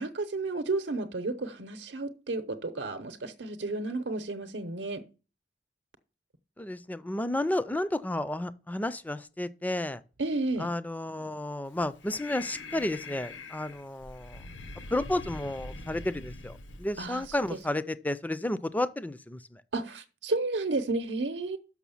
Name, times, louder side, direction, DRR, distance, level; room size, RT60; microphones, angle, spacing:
voice 1, 0.0-5.0 10.2-10.7 17.0-17.2 19.7-21.6, right 3 dB, 75° right, 0.8 m, -32 dB
voice 2, 6.6-10.0 10.6-14.4 14.9-19.6, left 1 dB, 10° left, 0.4 m, -32 dB
Breathing, 11.7-17.7, left 2 dB, 80° left, 1.0 m, -44 dB
6.2 x 6.1 x 7.0 m
head